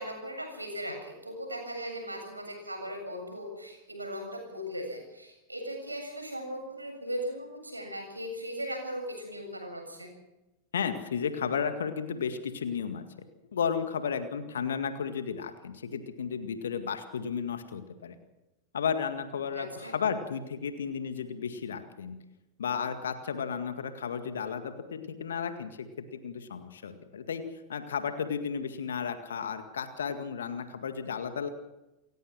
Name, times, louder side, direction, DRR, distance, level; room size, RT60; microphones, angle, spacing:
voice 1, 0.0-10.1 19.6-19.9, equal, 85° right, 3 dB, 7.6 m, -38 dB
voice 2, 10.7-13.1 13.5-18.2 18.7-22.2 22.6-25.9 26.1-27.4 27.7-31.5, left 6 dB, 65° left, 9 dB, 2.0 m, -33 dB
29.0 x 16.0 x 6.3 m, 0.98 s
figure-of-eight pair, 90°, 0 cm